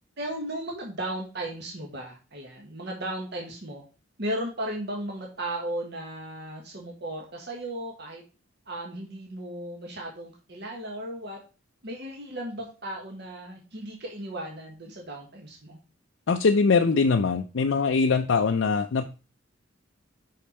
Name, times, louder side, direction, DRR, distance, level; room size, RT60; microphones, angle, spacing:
voice 1, 0.2-3.8 4.2-8.2 8.7-11.4 11.8-15.8, right 1 dB, 55° right, 0 dB, 1.4 m, -35 dB
voice 2, 16.3-19.0, left 4 dB, 70° left, 5 dB, 0.5 m, -22 dB
5.6 x 5.1 x 4.3 m, 0.33 s
head